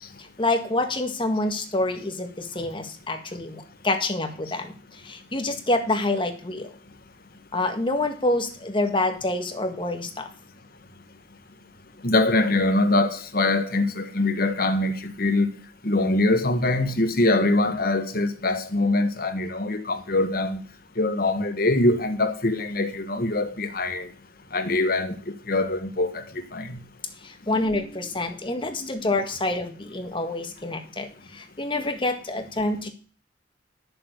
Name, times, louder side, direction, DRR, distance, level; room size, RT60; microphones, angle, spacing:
voice 1, 0.2-6.7 7.5-10.3 27.2-32.9, left 2 dB, 30° left, 1.7 m, -27 dB
voice 2, 12.0-15.5 15.8-20.6 21.0-24.1 24.5-26.8, left 2 dB, 55° left, 1.3 m, -23 dB
10.0 x 7.0 x 6.5 m
head